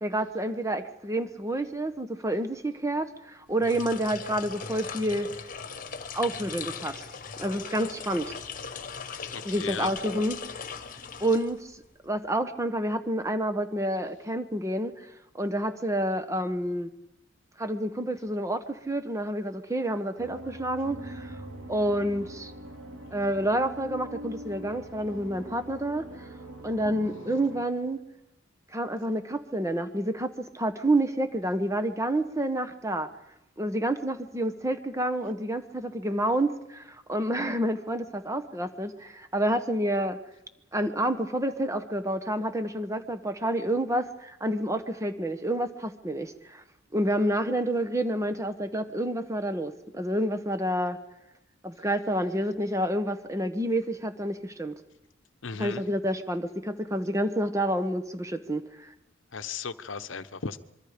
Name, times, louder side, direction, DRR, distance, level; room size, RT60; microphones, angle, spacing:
voice 1, 0.0-5.3 6.1-7.1 7.4-8.3 9.4-10.4 11.2-11.7 12.0-14.9 15.4-16.9 17.6-21.4 21.7-22.5 23.1-26.0 26.6-28.0 28.7-33.1 33.6-40.2 40.7-46.6 46.9-51.0 51.6-54.7 55.6-58.9, right 1 dB, 15° right, 9 dB, 1.2 m, -29 dB
sound 1, 3.5-11.9, left 5 dB, 45° left, 1.3 m, -39 dB
voice 2, 9.3-9.9 55.4-55.8 59.3-60.6, left 5 dB, 75° left, 12 dB, 1.0 m, -35 dB
sound 2, 20.2-27.6, right 1 dB, 80° right, 4.5 m, -42 dB
26.0 x 23.5 x 5.2 m, 0.89 s
head